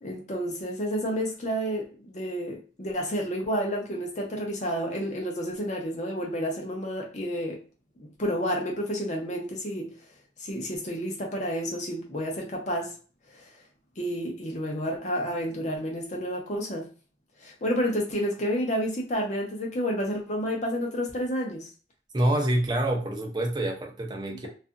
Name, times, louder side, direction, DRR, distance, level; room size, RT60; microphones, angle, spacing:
voice 1, 0.0-7.6 8.0-9.9 10.4-12.9 13.3-13.5 14.0-16.9 17.4-21.7, equal, 40° left, 0.7 m, -30 dB
voice 2, 22.1-24.5, right 1 dB, 25° right, 0.5 m, -26 dB
2.6 x 2.5 x 2.4 m
head